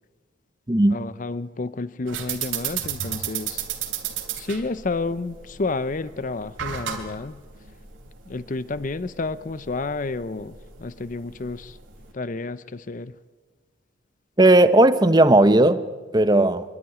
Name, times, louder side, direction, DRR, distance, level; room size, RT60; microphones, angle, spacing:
voice 1, 0.9-3.6 4.4-7.4 8.3-11.8 12.1-13.1, left 3 dB, 40° left, 0.5 m, -30 dB
sound 1, 2.1-12.1, right 9 dB, 70° right, 3.2 m, -34 dB
voice 2, 14.4-15.8 16.1-16.6, right 1 dB, 20° right, 0.8 m, -15 dB
24.0 x 12.5 x 9.9 m
head